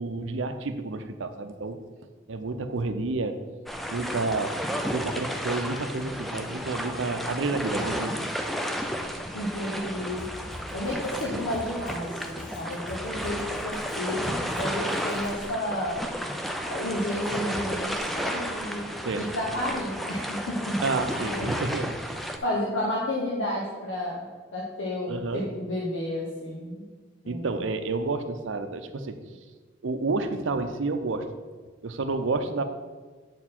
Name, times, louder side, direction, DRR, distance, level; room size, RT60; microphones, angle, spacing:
voice 1, 0.0-1.8 2.3-3.5 3.9-4.6 4.9-8.3 12.7-12.8 19.0-19.3 20.8-22.0 25.1-25.5 27.3-29.2 29.8-31.3 31.8-32.6, right 3 dB, 80° right, 8 dB, 0.6 m, -30 dB
sound 1, 3.7-22.4, equal, ahead, 0.4 m, -32 dB
voice 2, 9.3-10.3 10.7-16.1 16.6-20.8 21.1-21.5 22.4-26.9 27.2-27.5, left 1 dB, 75° left, -4 dB, 1.1 m, -31 dB
Drum kit, 10.2-15.5, left 1 dB, 45° left, 0.9 m, -44 dB
8.1 x 4.5 x 4.3 m, 1.5 s
head